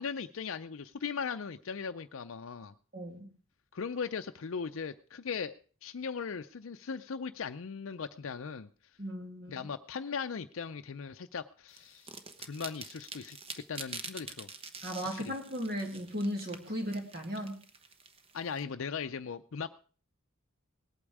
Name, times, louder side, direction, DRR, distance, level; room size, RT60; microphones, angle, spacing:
voice 1, 0.0-2.7 3.7-5.5 5.8-8.7 9.5-12.1 12.4-13.4 13.7-14.5 15.1-15.3 18.3-19.7, left 6 dB, 70° left, 7 dB, 0.5 m, -38 dB
voice 2, 2.9-3.3 9.0-9.6 14.8-17.6, equal, 45° right, 2 dB, 2.4 m, -36 dB
sound 1, 11.7-18.6, right 4 dB, 25° right, 1.0 m, -46 dB
19.0 x 8.7 x 4.8 m, 0.41 s
head